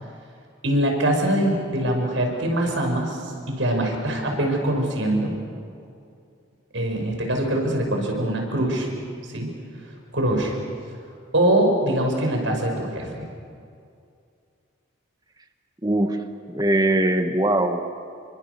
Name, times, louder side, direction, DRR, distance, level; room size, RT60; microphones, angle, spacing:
voice 1, 0.6-5.3 6.7-8.9 9.3-9.5 10.1-10.5 11.3-13.2, right 1 dB, 70° right, 2 dB, 5.4 m, -23 dB
voice 2, 15.8-16.2 16.5-17.9, right 1 dB, 20° right, 7 dB, 1.2 m, -21 dB
28.5 x 24.0 x 6.7 m, 2.4 s
head